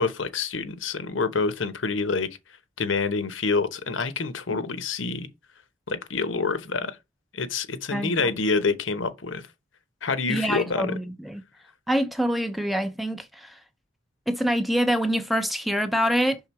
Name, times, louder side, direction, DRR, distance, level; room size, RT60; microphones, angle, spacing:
voice 1, 0.0-2.3 2.8-5.3 5.9-7.0 7.3-9.4 10.0-10.9, left 4 dB, 85° left, 0.9 m, -27 dB
voice 2, 7.9-8.3 10.3-11.4 11.9-13.6 14.3-16.4, equal, ahead, 0.6 m, -25 dB
5.7 x 3.8 x 4.6 m
head